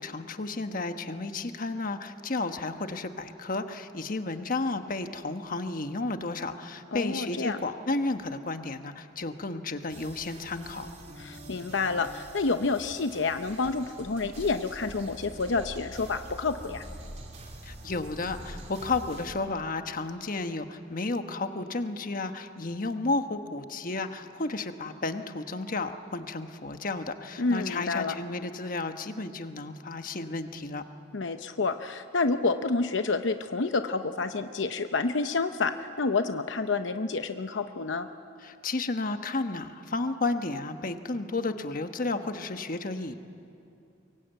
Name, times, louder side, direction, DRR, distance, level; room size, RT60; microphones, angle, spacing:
voice 1, 0.0-10.9 17.6-30.8 38.4-43.1, left 3 dB, 50° left, 7 dB, 1.2 m, -32 dB
voice 2, 6.9-7.6 11.2-16.8 27.4-28.1 31.1-38.1, left 3 dB, 80° left, 8 dB, 0.8 m, -29 dB
sound 1, 9.9-19.3, right 1 dB, 40° right, 3.1 m, -45 dB
23.5 x 23.0 x 9.1 m, 2.6 s
head